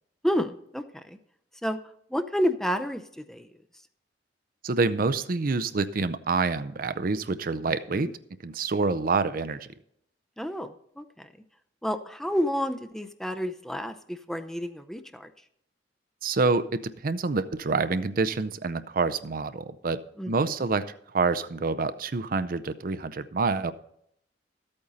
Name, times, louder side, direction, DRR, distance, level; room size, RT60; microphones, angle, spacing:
voice 1, 0.2-1.2 1.6-1.8 2.1-3.5 7.9-8.1 10.4-11.3 11.8-15.3 20.2-20.3, equal, ahead, 8 dB, 0.6 m, -30 dB
voice 2, 4.6-8.1 8.4-9.7 16.2-20.0 20.3-23.7, right 4 dB, 50° right, 13 dB, 0.6 m, -27 dB
13.5 x 8.7 x 4.1 m, 0.73 s
head